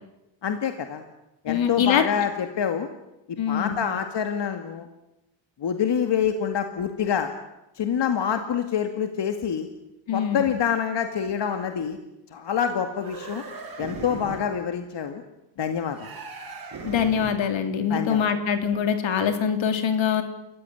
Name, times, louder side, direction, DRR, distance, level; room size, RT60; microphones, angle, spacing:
voice 1, 0.4-1.0 1.4-2.9 3.5-4.9 5.6-7.3 7.8-9.7 10.1-12.0 12.3-13.4 13.8-15.2 15.6-16.1 17.9-18.3, left 8 dB, 65° left, 6 dB, 2.2 m, -26 dB
voice 2, 1.5-2.0 3.4-3.8 10.1-10.5 16.8-20.2, left 7 dB, 80° left, 7 dB, 3.2 m, -24 dB
sound 1, 12.9-14.6 15.9-17.5, right 4 dB, 50° right, 6.0 m, -38 dB
29.0 x 15.5 x 10.0 m, 0.91 s
cardioid pair, 95°, 45 cm